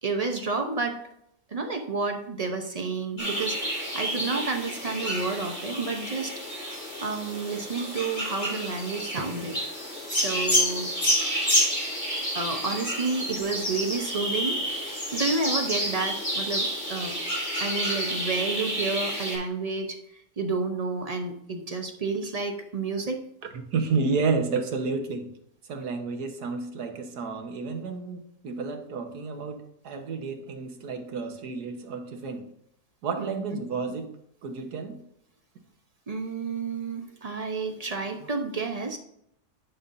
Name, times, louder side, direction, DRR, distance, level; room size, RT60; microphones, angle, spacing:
voice 1, 0.0-1.0 1.5-6.7 7.0-9.6 10.1-10.9 12.3-17.1 17.6-20.0 20.4-23.2 33.2-33.6 36.1-39.0, right 4 dB, 45° right, 4 dB, 0.5 m, -30 dB
sound 1, 3.2-19.4, equal, 20° left, 2.6 m, -29 dB
voice 2, 23.7-25.3 25.7-32.4 33.0-34.1 34.4-35.0, right 4 dB, 80° right, 5 dB, 1.6 m, -30 dB
11.0 x 5.4 x 2.6 m, 0.73 s
omnidirectional pair, 1.7 m